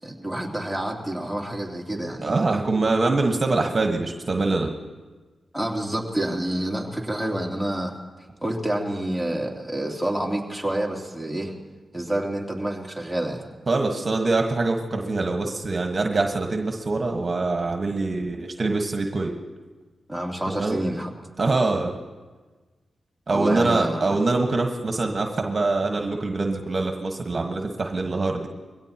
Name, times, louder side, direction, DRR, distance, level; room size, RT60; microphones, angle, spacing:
voice 1, 0.0-2.4 5.5-7.9 8.4-11.5 11.9-13.4 20.1-21.1 23.3-24.1, right 1 dB, ahead, -1 dB, 3.0 m, -28 dB
voice 2, 2.2-4.7 13.7-19.3 20.6-20.8 21.4-21.9 23.3-28.5, right 3 dB, 50° right, 3 dB, 1.5 m, -24 dB
22.5 x 16.5 x 3.0 m, 1.3 s
cardioid pair, 50°, 0 cm